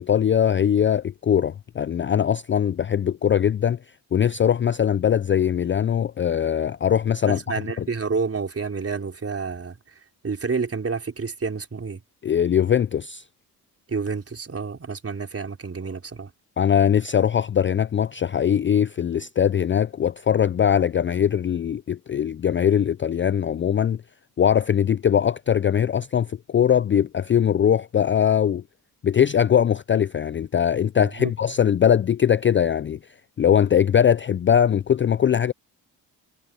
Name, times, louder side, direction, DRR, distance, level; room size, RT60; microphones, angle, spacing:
voice 1, 0.0-3.8 4.1-7.4 12.2-13.2 16.6-24.0 24.4-28.6 29.0-33.0 33.4-35.5, left 9 dB, 30° left, 0.4 m, -21 dB
voice 2, 7.2-9.8 10.2-12.0 13.9-16.3 31.0-31.3, right 5 dB, 35° right, 3.8 m, -29 dB
cardioid pair, 85°, 40 cm